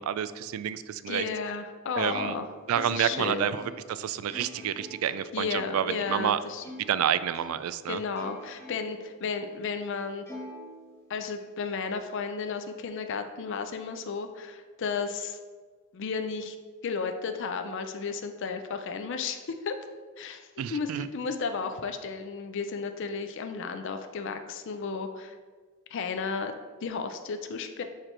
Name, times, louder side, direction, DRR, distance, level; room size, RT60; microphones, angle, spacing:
voice 1, 0.0-1.3 2.0-2.4 2.7-6.4 6.9-8.0 20.6-21.1, right 9 dB, 75° right, 15 dB, 0.3 m, -29 dB
voice 2, 1.1-2.5 2.8-3.5 5.3-6.6 7.9-10.2 11.1-15.4 15.9-16.6 16.8-19.7 20.2-25.4 25.9-26.5 26.8-27.8, left 5 dB, 60° left, 7 dB, 0.4 m, -33 dB
Plucked string instrument, 2.1-7.0 7.3-9.1 9.5-9.6 10.3-11.4, left 1 dB, 10° left, 1.2 m, -46 dB
4.9 x 4.4 x 4.3 m, 1.5 s
head